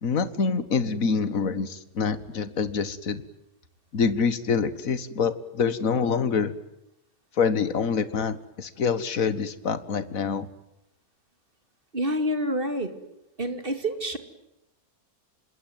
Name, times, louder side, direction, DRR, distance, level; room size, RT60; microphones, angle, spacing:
voice 1, 0.0-3.2 3.9-6.5 7.4-10.5, left 5 dB, 65° left, 14 dB, 2.0 m, -26 dB
voice 2, 11.9-12.9 13.4-14.2, equal, 35° right, 9 dB, 2.9 m, -27 dB
26.5 x 21.5 x 9.4 m, 0.86 s
omnidirectional pair, 1.5 m